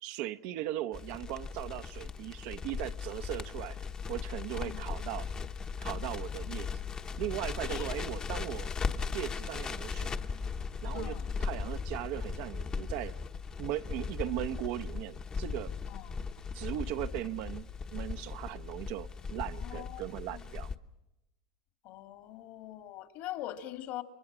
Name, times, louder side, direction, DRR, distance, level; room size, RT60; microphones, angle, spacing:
voice 1, 0.0-3.8 4.1-5.3 5.8-6.7 7.2-8.7 9.1-10.1 10.8-13.1 13.6-15.7 16.5-20.7, right 14 dB, 60° right, 0.8 m, -38 dB
Crackle, 0.9-20.7, left 5 dB, 25° left, 1.0 m, -38 dB
voice 2, 10.9-11.3 15.9-16.5 19.6-20.0 20.3-20.5 21.8-24.0, left 14 dB, 60° left, 2.4 m, -43 dB
29.5 x 23.5 x 6.2 m
supercardioid pair, 125°, 3 cm